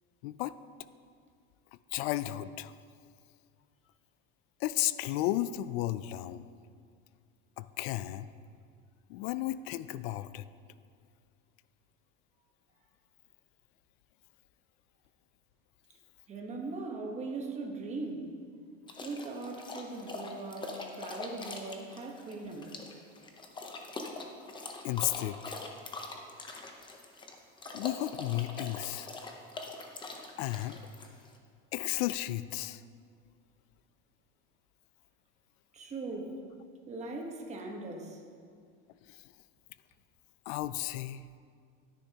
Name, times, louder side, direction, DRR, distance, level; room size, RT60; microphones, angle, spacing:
voice 1, 0.2-0.5 1.9-2.7 4.6-6.4 7.6-8.3 9.1-10.4 24.8-25.6 27.7-29.1 30.4-30.8 31.7-32.8 40.5-41.2, left 15 dB, 85° left, 15 dB, 0.5 m, -33 dB
voice 2, 16.3-18.3 19.0-22.7 35.7-36.4 36.9-38.2, right 3 dB, 20° right, 2 dB, 1.2 m, -40 dB
sound 1, 18.9-31.4, left 3 dB, 15° left, 0.8 m, -43 dB
13.5 x 10.0 x 2.9 m, 2.2 s
cardioid pair, 155°, 31 cm